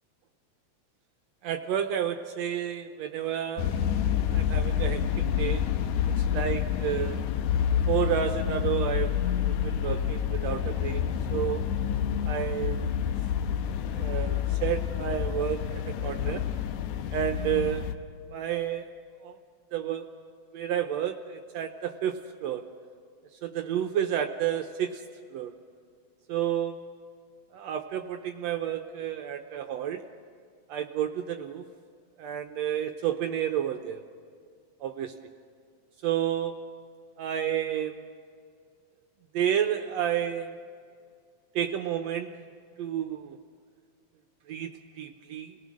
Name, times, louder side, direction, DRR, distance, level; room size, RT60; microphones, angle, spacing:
voice 1, 1.4-3.8 4.3-5.6 6.2-7.2 7.9-11.7 12.2-12.9 13.9-16.4 17.1-17.8 18.3-18.8 19.2-19.4 19.7-20.1 20.5-22.6 23.4-25.0 25.3-25.5 26.3-26.8 27.5-30.0 30.7-31.7 32.2-34.0 34.8-35.2 36.0-36.5 37.2-38.0 39.3-40.6 41.6-42.5 42.8-43.4 44.5-45.5, right 10 dB, 75° right, 6 dB, 1.9 m, -30 dB
sound 1, 3.6-17.9, left 9 dB, 80° left, 2.1 m, -28 dB
28.5 x 18.0 x 6.3 m, 2.2 s
omnidirectional pair, 3.4 m